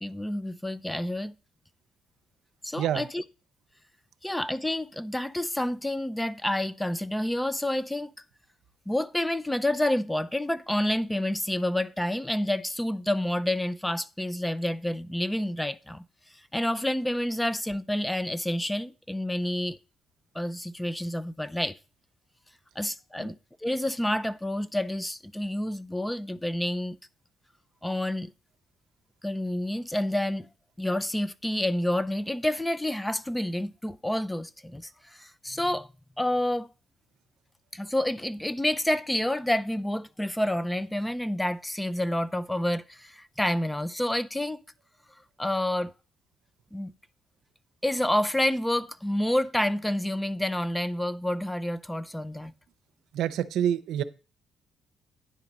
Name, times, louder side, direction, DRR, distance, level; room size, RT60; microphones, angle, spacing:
voice 1, 0.0-1.3 2.6-3.2 4.2-8.1 8.9-16.0 16.5-19.8 20.3-21.8 22.8-27.0 27.8-28.3 29.2-30.5 30.8-35.9 36.2-36.7 37.7-44.6 45.4-45.9 46.7-46.9 47.8-52.5, left 1 dB, 10° left, 0.5 m, -29 dB
voice 2, 2.8-3.1 23.2-23.3 53.1-54.0, right 10 dB, 80° right, 0.6 m, -27 dB
10.0 x 3.9 x 7.1 m
cardioid pair, 90°, 0 cm